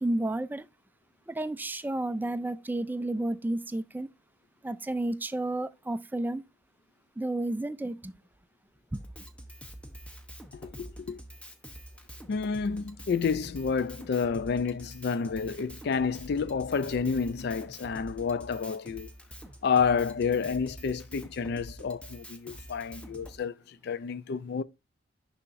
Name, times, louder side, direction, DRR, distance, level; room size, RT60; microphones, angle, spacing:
voice 1, 0.0-0.7 1.3-4.1 4.6-6.4 7.2-8.1 8.9-9.0, right 1 dB, 10° right, 0.3 m, -31 dB
Drum kit, 8.9-23.4, equal, 5° left, 0.8 m, -46 dB
voice 2, 10.5-11.2 12.3-19.1 19.6-24.6, left 5 dB, 60° left, 0.4 m, -30 dB
6.8 x 5.7 x 2.5 m
head